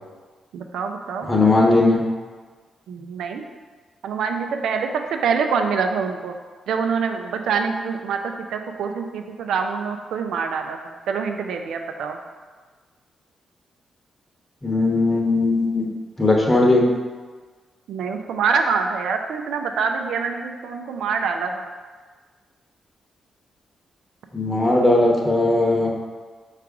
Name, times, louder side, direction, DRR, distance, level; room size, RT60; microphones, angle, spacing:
voice 1, 0.5-1.3 2.9-3.4 4.0-6.3 6.7-10.8 11.1-12.2 17.9-21.7, right 5 dB, 75° right, 5 dB, 0.4 m, -25 dB
voice 2, 1.3-2.0 14.6-15.9 16.2-16.9 24.3-25.9, left 2 dB, 20° left, -2 dB, 1.0 m, -18 dB
4.6 x 2.5 x 4.6 m, 1.4 s
hypercardioid pair, 40°, 0 cm